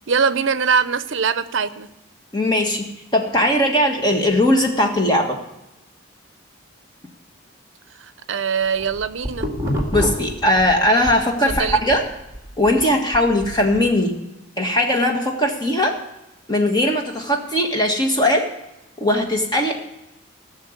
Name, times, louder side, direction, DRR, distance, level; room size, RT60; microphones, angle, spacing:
voice 1, 0.1-1.9 8.0-9.5 11.5-11.8, right 6 dB, 65° right, 14 dB, 0.6 m, -22 dB
voice 2, 2.3-2.9 3.1-5.4 9.9-12.0 12.6-14.1 14.6-15.9 16.5-18.5 19.0-19.7, left 1 dB, 20° left, 2 dB, 1.5 m, -19 dB
sound 1, 8.6-11.2 11.5-13.9, equal, 15° right, 2.0 m, -28 dB
15.0 x 6.5 x 8.1 m, 0.93 s
head